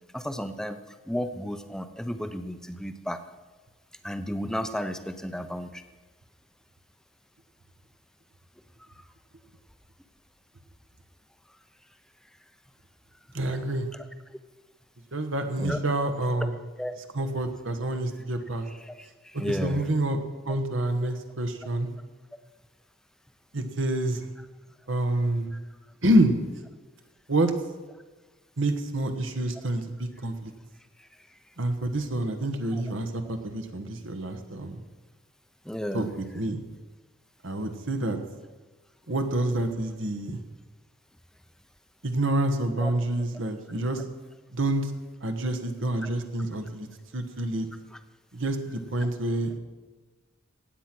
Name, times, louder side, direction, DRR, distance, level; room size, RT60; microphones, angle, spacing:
voice 1, 0.1-0.8 1.1-3.2 4.0-5.8 9.0-9.1 15.6-15.8 16.8-16.9 18.9-19.9 31.0-31.1 35.6-36.1 42.8-42.9, equal, 5° left, 9 dB, 0.7 m, -33 dB
voice 2, 13.3-13.9 15.1-16.5 17.1-18.7 19.3-20.2 20.4-21.9 23.5-24.3 24.9-25.5 26.0-26.3 27.3-27.5 28.6-30.5 31.6-34.8 35.9-36.1 36.3-36.6 37.4-38.2 39.1-40.4 42.0-44.0 44.5-44.9 45.2-46.9 47.1-47.7 48.3-49.5, right 1 dB, 65° right, 7 dB, 1.2 m, -27 dB
16.0 x 8.9 x 6.0 m, 1.2 s
head